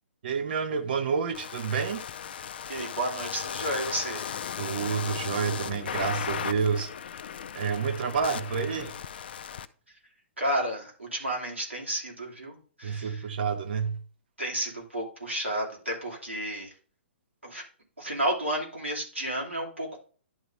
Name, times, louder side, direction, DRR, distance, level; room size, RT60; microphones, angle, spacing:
voice 1, 0.2-2.0 4.6-6.9 7.5-8.9 12.8-14.0, right 6 dB, 50° right, 1.0 m, -29 dB
sound 1, 1.3-9.7, left 8 dB, 55° left, 0.4 m, -36 dB
voice 2, 2.7-4.3 10.4-13.2 14.4-16.7 17.4-17.6 18.0-20.0, right 1 dB, 90° right, 2.9 m, -32 dB
11.0 x 3.9 x 3.3 m
figure-of-eight pair, 120°, 6 cm